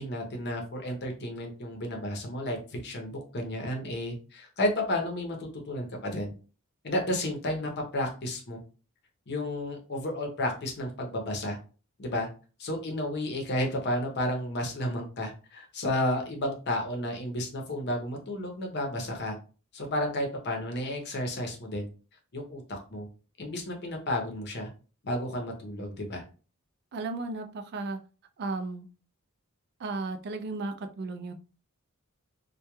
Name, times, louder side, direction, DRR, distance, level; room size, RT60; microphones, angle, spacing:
voice 1, 0.0-6.3 6.8-8.6 9.3-11.6 12.0-12.3 12.6-19.4 19.7-21.9 22.3-23.1 23.4-24.7 25.0-26.2, left 1 dB, 50° left, 2 dB, 0.7 m, -32 dB
voice 2, 26.9-28.0 28.4-28.9 29.8-31.3, right 3 dB, 50° right, 8 dB, 0.3 m, -34 dB
2.9 x 2.2 x 2.2 m, 0.36 s
head